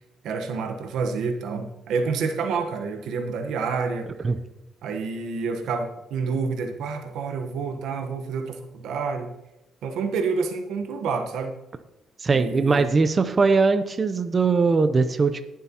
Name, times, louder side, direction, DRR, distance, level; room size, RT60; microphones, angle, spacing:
voice 1, 0.2-4.1 4.8-9.3 9.8-11.5 12.3-12.9, right 5 dB, 80° right, 5 dB, 1.2 m, -28 dB
voice 2, 12.2-15.4, right 4 dB, 35° right, 9 dB, 0.7 m, -20 dB
20.5 x 7.5 x 3.0 m, 0.93 s
cardioid pair, 90°, 0 cm